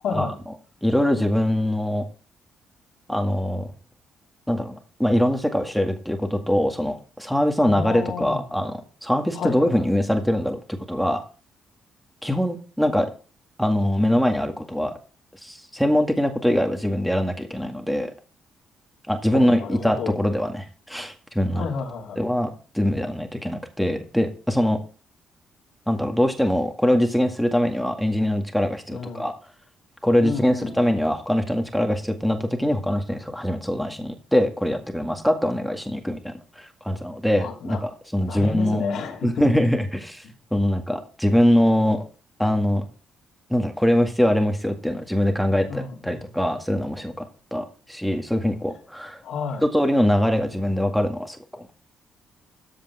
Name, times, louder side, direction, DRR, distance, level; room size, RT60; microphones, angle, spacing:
voice 1, 0.8-2.1 3.1-3.7 4.5-8.7 9.0-11.2 12.2-13.1 13.6-14.9 15.4-18.1 19.1-21.7 22.2-24.8 25.9-29.3 30.0-38.8 39.2-40.2 40.5-42.0 42.4-42.9 43.5-47.3 47.5-49.2 49.6-51.4, equal, ahead, 4 dB, 2.0 m, -23 dB
voice 2, 7.6-8.4 9.3-9.9 19.3-20.2 21.5-22.2 28.9-29.3 30.2-31.0 37.4-37.8 38.3-39.3 45.7-46.3 49.2-49.6, left 5 dB, 75° left, 0 dB, 3.3 m, -31 dB
14.0 x 5.2 x 5.0 m, 0.37 s
cardioid pair, 90°, 0 cm